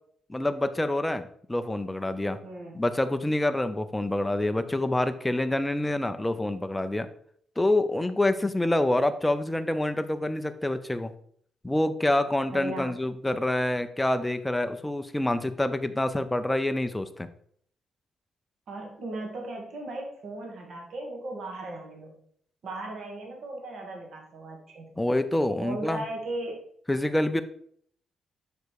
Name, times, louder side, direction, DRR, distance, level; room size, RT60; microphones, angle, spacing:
voice 1, 0.3-2.4 2.7-7.1 7.6-11.1 11.6-17.3 25.0-26.0 26.9-27.4, left 1 dB, 5° left, 9 dB, 0.4 m, -27 dB
voice 2, 2.4-2.8 12.5-13.0 18.7-22.2 22.6-25.0 25.6-26.6, right 2 dB, 50° right, 1 dB, 1.7 m, -37 dB
6.8 x 4.9 x 4.6 m, 0.63 s
cardioid pair, 180°, 0 cm